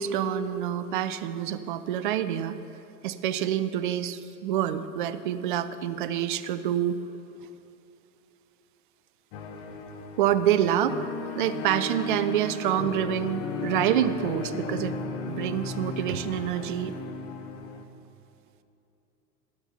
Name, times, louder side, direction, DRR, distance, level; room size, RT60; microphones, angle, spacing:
voice 1, 0.0-2.6 3.0-7.0 10.2-11.1 11.3-15.0 15.3-16.9, right 10 dB, 35° right, 12 dB, 0.4 m, -27 dB
sound 1, 9.3-17.9, left 3 dB, 30° left, 0.7 m, -35 dB
11.5 x 7.9 x 5.7 m, 2.8 s
figure-of-eight pair, 95°, 49 cm